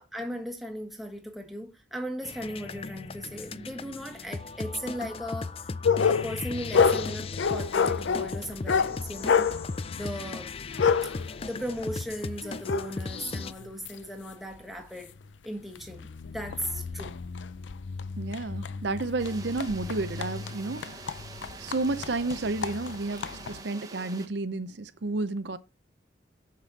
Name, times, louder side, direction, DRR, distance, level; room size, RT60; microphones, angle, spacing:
voice 1, 0.0-5.7 6.1-9.5 9.9-10.5 11.4-15.2 15.4-17.1, equal, ahead, 1.5 m, -37 dB
sound 1, 2.2-13.5, left 3 dB, 30° left, 0.4 m, -37 dB
sound 2, 5.8-14.0 14.5-14.6 15.2-15.3 15.8-23.6, left 6 dB, 85° left, 0.5 m, -29 dB
voice 2, 18.2-20.8 21.6-25.6, right 3 dB, 70° right, 0.7 m, -31 dB
sound 3, 19.2-24.3, right 3 dB, 20° right, 1.1 m, -45 dB
6.8 x 6.6 x 4.1 m
head